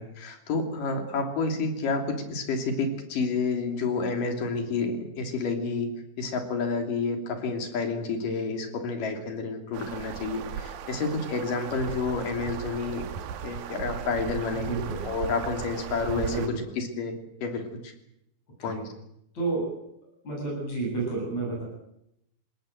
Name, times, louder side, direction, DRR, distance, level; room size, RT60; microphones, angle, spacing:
voice 1, 0.0-5.9 6.2-13.0 13.4-14.7 15.0-17.1 17.4-17.9 18.6-18.9, left 4 dB, 65° left, 5 dB, 4.6 m, -29 dB
sound 1, 9.7-16.5, right 8 dB, 75° right, 3.0 m, -37 dB
voice 2, 14.5-15.0 16.1-16.6 18.6-18.8 19.3-19.8 20.2-21.6, right 3 dB, 50° left, -1 dB, 9.3 m, -30 dB
27.0 x 19.5 x 8.0 m, 0.81 s
omnidirectional pair, 4.2 m